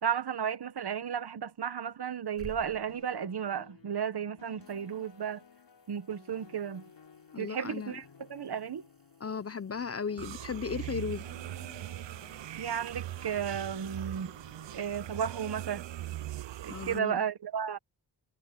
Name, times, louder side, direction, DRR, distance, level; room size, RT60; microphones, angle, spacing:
voice 1, 0.0-5.4 5.9-6.8 7.4-8.0 8.3-8.8 12.6-14.3 14.7-15.8 16.6-17.8, right 8 dB, 60° right, 1.1 m, -33 dB
sound 1, 2.1-4.2 4.6-14.2 17.0-17.1, right 3 dB, 30° right, 6.6 m, -58 dB
sound 2, 2.9-16.4, left 6 dB, 70° left, 4.3 m, -57 dB
voice 2, 7.3-8.0 9.2-11.2 16.7-17.2, left 6 dB, 35° left, 0.5 m, -36 dB
sound 3, 10.2-17.0, right 14 dB, 80° right, 0.5 m, -41 dB
wide cardioid pair, 140°, 43 cm